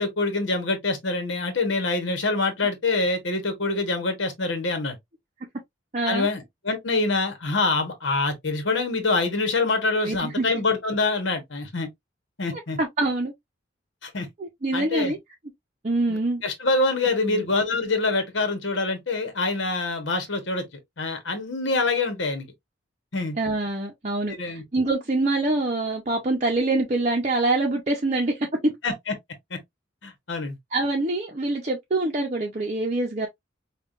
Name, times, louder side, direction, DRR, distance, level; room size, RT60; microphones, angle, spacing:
voice 1, 0.0-5.0 6.1-11.9 12.4-12.8 14.0-14.3 14.7-15.1 16.1-20.6 21.0-22.5 23.1-23.4 24.2-24.6 28.8-29.1 29.5-29.6 30.0-30.6, left 3 dB, 65° left, 1.2 m, -25 dB
voice 2, 5.9-6.3 10.0-10.5 12.5-13.3 14.4-15.2 15.8-16.4 17.3-17.4 23.4-28.7 30.7-33.3, right 2 dB, 35° right, 0.7 m, -25 dB
5.5 x 2.4 x 2.5 m
head